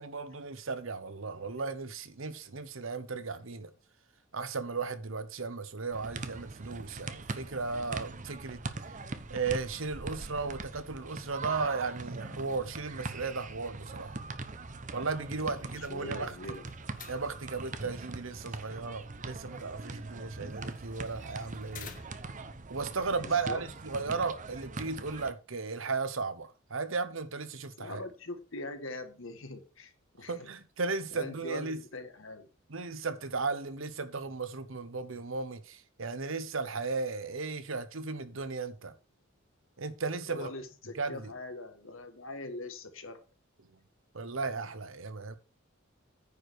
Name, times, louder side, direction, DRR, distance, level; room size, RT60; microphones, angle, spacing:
voice 1, 0.0-3.7 4.3-8.6 9.3-14.2 14.9-16.3 17.1-21.9 22.7-28.0 30.3-31.8 32.7-38.9 39.8-40.5 40.9-41.3 44.1-45.3, right 4 dB, 70° right, 1.1 m, -35 dB
sound 1, 5.9-25.3, right 3 dB, 40° right, 0.9 m, -42 dB
voice 2, 15.3-16.6 23.2-23.6 23.9-24.2 27.8-29.9 30.2-30.5 31.1-32.5 40.3-43.2, left 2 dB, 70° left, 1.8 m, -42 dB
sound 2, 15.5-22.4, left 6 dB, 40° left, 1.5 m, -54 dB
9.7 x 5.0 x 6.3 m
head